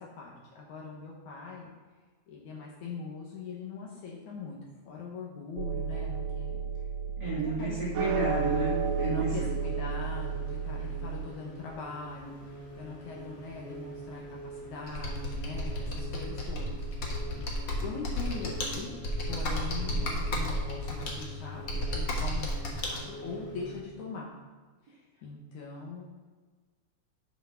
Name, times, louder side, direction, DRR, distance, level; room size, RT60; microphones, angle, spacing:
voice 1, 0.0-1.7 2.3-4.6 4.9-6.6 7.2-7.8 8.0-8.2 9.0-16.8 17.4-18.9 19.3-24.3 24.9-26.0, left 4 dB, 65° left, -3 dB, 2.3 m, -42 dB
sound 1, 5.6-11.3, right 6 dB, 75° right, 2.5 m, -32 dB
voice 2, 7.2-9.5, right 2 dB, 35° right, -8 dB, 2.6 m, -32 dB
sound 2, 8.3-23.8, right 1 dB, 50° left, 2.4 m, -45 dB
Computer keyboard, 14.9-23.0, left 1 dB, 90° left, 1.0 m, -33 dB
7.2 x 5.9 x 5.6 m, 1.4 s
omnidirectional pair, 4.1 m